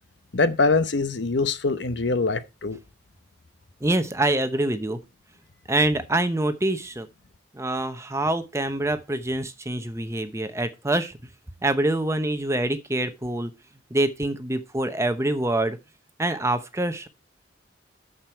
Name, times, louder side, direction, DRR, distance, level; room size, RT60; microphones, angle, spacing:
voice 1, 0.3-2.8, left 3 dB, 65° left, 0.8 m, -23 dB
voice 2, 3.8-5.0 5.7-7.1 7.5-11.2 11.6-13.5 13.9-15.8 16.2-17.1, right 1 dB, 15° right, 0.9 m, -25 dB
9.3 x 6.7 x 4.4 m
head